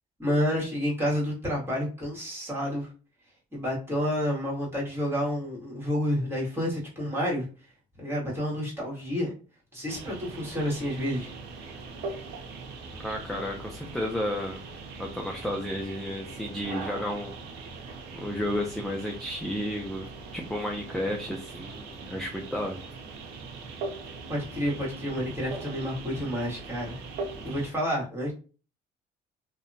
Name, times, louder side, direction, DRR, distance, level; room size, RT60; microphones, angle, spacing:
voice 1, 0.2-2.9 3.5-7.5 8.0-9.4 9.7-11.3 24.3-26.9 27.4-28.3, equal, 15° right, -4 dB, 1.4 m, -29 dB
sound 1, 9.9-27.7, right 3 dB, 90° right, 0.6 m, -41 dB
voice 2, 13.0-14.7 15.0-17.3 18.1-22.8, left 1 dB, ahead, 1 dB, 0.4 m, -32 dB
2.7 x 2.2 x 2.5 m, 0.35 s
cardioid pair, 110°, 17 cm